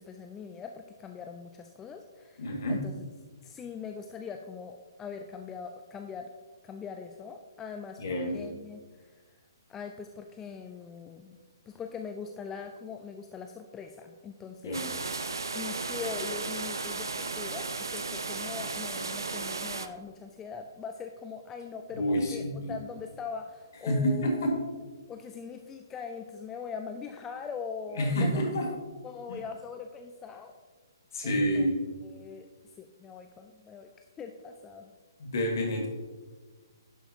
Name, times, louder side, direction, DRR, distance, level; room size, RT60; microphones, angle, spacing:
voice 1, 0.0-3.1 3.4-6.3 6.6-8.8 9.7-11.4 11.7-14.9 15.5-24.5 25.1-28.5 29.0-30.5 31.2-31.7 32.0-32.5 32.8-33.9 34.2-34.9, left 6 dB, 15° left, 5 dB, 0.3 m, -41 dB
voice 2, 2.4-2.8 8.0-8.4 14.6-14.9 21.9-22.7 23.9-24.6 28.0-28.7 29.3-29.4 31.1-31.8 35.2-35.9, equal, 50° left, 0 dB, 1.8 m, -28 dB
sound 1, 14.7-19.9, right 3 dB, 70° right, 0.5 m, -35 dB
11.0 x 5.6 x 2.8 m, 1.4 s
figure-of-eight pair, 125°, 2 cm